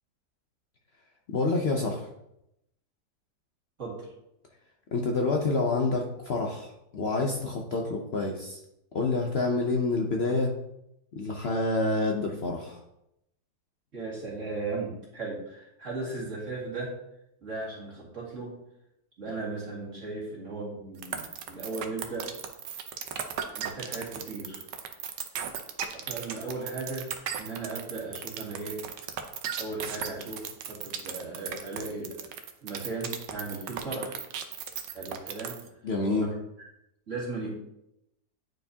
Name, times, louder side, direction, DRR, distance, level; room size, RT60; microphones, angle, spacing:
voice 1, 1.3-2.1 4.9-8.6 8.9-10.5 11.1-12.8 35.8-36.3, left 3 dB, 55° left, 1 dB, 0.7 m, -28 dB
voice 2, 3.8-4.1 13.9-17.0 17.4-18.5 19.2-22.3 23.6-24.6 25.9-27.1 27.4-28.8 29.6-32.3 32.6-34.1 34.9-35.6 36.1-36.7 37.1-37.5, right 3 dB, 45° right, -5 dB, 2.4 m, -36 dB
sound 1, 21.0-35.7, right 9 dB, 85° right, 1.3 m, -35 dB
9.4 x 4.5 x 2.8 m, 0.83 s
omnidirectional pair, 1.8 m